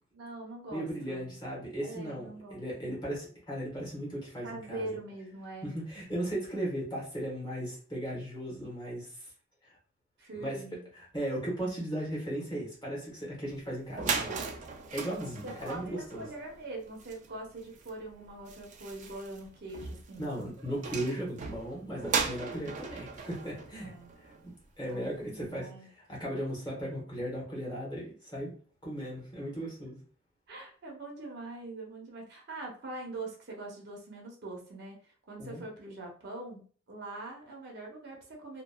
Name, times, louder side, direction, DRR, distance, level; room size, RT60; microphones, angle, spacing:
voice 1, 0.1-1.4 1.8-3.1 4.4-5.7 10.2-10.8 15.4-20.3 22.4-22.7 23.8-24.1 24.8-25.9 30.5-38.6, right 2 dB, 55° right, -1 dB, 0.8 m, -43 dB
voice 2, 0.7-4.9 5.6-9.3 10.3-10.6 10.9-14.4 14.9-16.3 20.2-23.9 24.4-25.7 26.0-28.5 28.8-30.0 35.4-35.6, right 1 dB, 20° left, -5 dB, 1.1 m, -37 dB
sound 1, 13.6-13.7 13.9-24.6, right 5 dB, 40° right, 0.3 m, -38 dB
2.9 x 2.3 x 2.2 m, 0.43 s
head